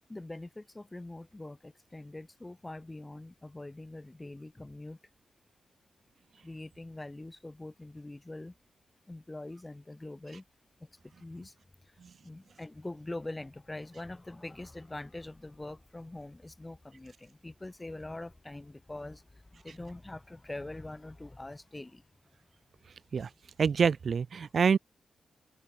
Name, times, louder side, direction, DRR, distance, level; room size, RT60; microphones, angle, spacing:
voice 1, 0.1-5.0 6.4-8.5 9.1-10.4 10.8-11.5 11.8-22.0, left 2 dB, 15° left, 1.5 m, -44 dB
voice 2, 23.6-24.8, right 6 dB, 50° right, 0.3 m, -26 dB
wide cardioid pair, 170°, 0 cm